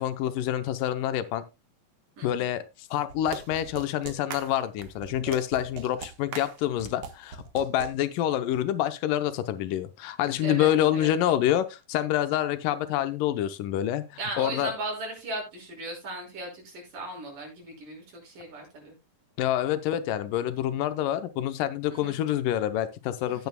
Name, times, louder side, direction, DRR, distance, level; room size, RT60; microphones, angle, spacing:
voice 1, 0.0-1.4 2.2-14.0 14.4-14.7 19.4-23.5, left 12 dB, 90° left, 11 dB, 2.5 m, -27 dB
voice 2, 2.2-2.5 10.4-11.1 14.2-19.0 21.9-22.2 23.2-23.5, right 2 dB, 85° right, 0 dB, 7.1 m, -37 dB
sound 1, 3.1-7.9, right 6 dB, 55° right, 1.8 m, -40 dB
16.0 x 9.2 x 2.2 m, 0.25 s
omnidirectional pair, 3.7 m